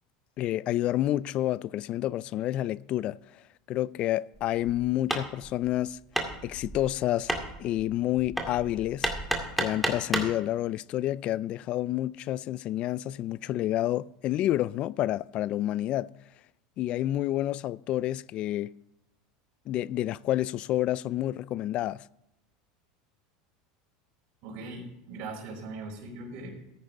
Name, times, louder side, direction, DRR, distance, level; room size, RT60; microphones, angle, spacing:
voice 1, 0.4-3.2 3.7-6.0 6.4-7.3 7.6-9.1 9.6-16.1 16.8-18.7 19.7-22.0, left 14 dB, 45° left, 0.4 m, -29 dB
Hammer, 4.3-10.4, right 1 dB, ahead, 2.1 m, -33 dB
voice 2, 24.4-26.5, right 3 dB, 55° right, 4.7 m, -40 dB
14.0 x 10.0 x 3.7 m
supercardioid pair, 130°, 3 cm